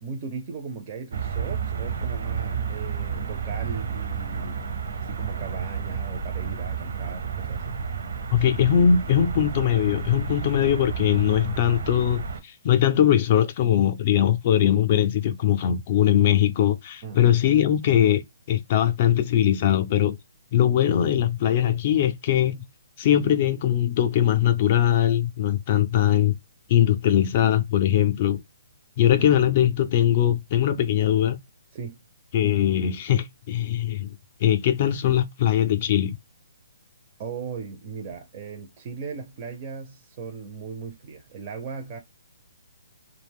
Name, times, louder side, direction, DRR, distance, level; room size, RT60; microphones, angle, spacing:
voice 1, 0.0-7.8 17.0-17.2 31.7-32.0 37.2-42.0, right 5 dB, 30° right, 0.5 m, -38 dB
sound 1, 1.1-12.4, right 6 dB, 65° right, 0.7 m, -31 dB
voice 2, 8.3-18.2 18.5-20.2 20.5-22.6 23.0-26.3 26.7-28.4 29.0-31.4 32.3-34.1 34.4-36.2, left 10 dB, 40° left, 0.4 m, -21 dB
2.4 x 2.1 x 3.4 m
hypercardioid pair, 160°, 0 cm